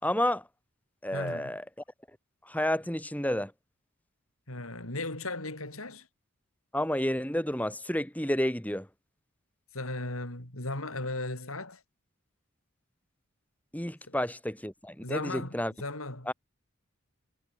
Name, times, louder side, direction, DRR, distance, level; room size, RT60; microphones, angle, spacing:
voice 1, 0.0-0.4 1.0-1.6 2.4-3.5 6.7-8.9 13.7-15.7 16.3-16.4, left 1 dB, 5° left, 4.8 m, -30 dB
voice 2, 1.1-1.5 4.5-6.1 9.7-11.8 14.1-14.2 15.0-16.3, left 2 dB, 85° left, 7.1 m, -36 dB
head